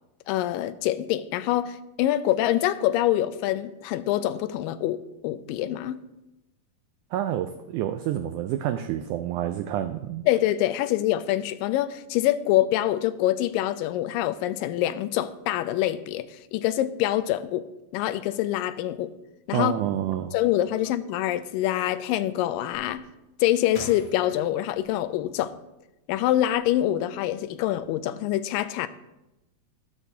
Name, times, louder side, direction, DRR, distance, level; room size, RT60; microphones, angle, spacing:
voice 1, 0.3-6.0 10.3-19.2 19.5-19.7 20.3-23.0 23.4-25.6 26.1-28.9, left 13 dB, 80° left, 12 dB, 2.2 m, -25 dB
voice 2, 7.1-10.3 19.5-20.3, right 11 dB, 85° right, 8 dB, 1.7 m, -28 dB
sound 1, 23.1-25.8 26.3-27.1 27.4-27.9, left 1 dB, 65° left, 3.8 m, -46 dB
12.5 x 12.0 x 2.7 m, 0.96 s
omnidirectional pair, 4.1 m